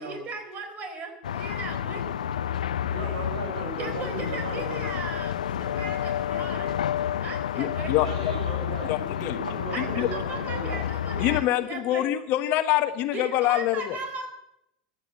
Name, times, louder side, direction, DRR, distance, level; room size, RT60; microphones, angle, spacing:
voice 1, 0.0-2.1 3.8-6.8 7.2-8.0 9.7-12.1 13.1-14.3, right 3 dB, 40° right, 5 dB, 4.2 m, -37 dB
sound 1, 1.2-11.4, left 10 dB, 85° left, 0.5 m, -30 dB
voice 2, 2.4-4.8 7.9-10.8, right 2 dB, 80° right, 0 dB, 6.8 m, -36 dB
voice 3, 7.6-8.3 8.9-9.4 9.8-10.1 11.2-14.0, left 13 dB, 50° left, 10 dB, 1.2 m, -25 dB
14.5 x 9.6 x 7.5 m, 0.80 s
hypercardioid pair, 90°, 4 cm